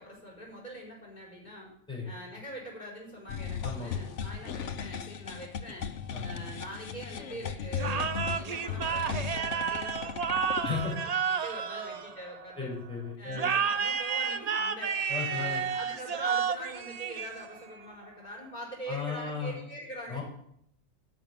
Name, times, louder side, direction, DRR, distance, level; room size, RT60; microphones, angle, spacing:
voice 1, 0.0-1.7 2.0-5.9 6.2-12.7 13.2-15.0 15.3-20.2, equal, 40° left, -3 dB, 4.9 m, -43 dB
sound 1, 3.3-10.9, left 7 dB, 85° left, 1.2 m, -36 dB
voice 2, 3.6-3.9 6.1-6.2 10.6-10.9 12.6-13.5 15.1-15.6 18.9-19.6 20.1-20.2, left 5 dB, 5° left, -4 dB, 5.2 m, -35 dB
sound 2, 7.8-12.6 13.3-17.7, right 6 dB, 45° right, 0.6 m, -31 dB
10.5 x 6.3 x 8.9 m, 0.70 s
omnidirectional pair, 1.2 m